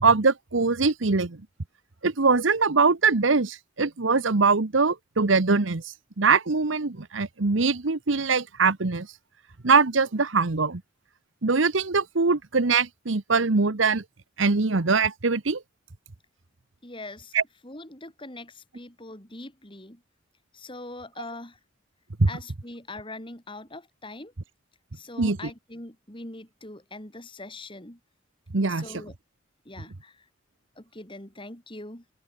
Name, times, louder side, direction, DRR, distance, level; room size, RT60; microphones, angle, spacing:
voice 1, 0.0-1.4 2.0-5.8 6.2-9.1 9.6-10.8 11.4-14.0 14.4-15.6 17.3-17.4 22.2-22.3 25.2-25.4 28.5-28.8, right 4 dB, 80° right, 1.1 m, -22 dB
voice 2, 16.8-17.3 17.6-20.0 20.5-21.6 22.3-24.3 24.9-28.0 28.7-29.1 29.6-30.3 30.8-32.0, left 2 dB, 25° left, 4.2 m, -42 dB
head